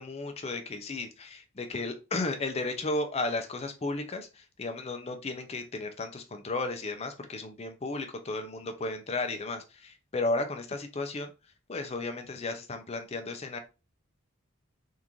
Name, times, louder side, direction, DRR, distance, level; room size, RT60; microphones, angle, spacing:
voice 1, 0.0-11.3 11.7-13.6, left 2 dB, 30° left, 6 dB, 0.5 m, -34 dB
3.7 x 2.5 x 2.9 m, 0.29 s
head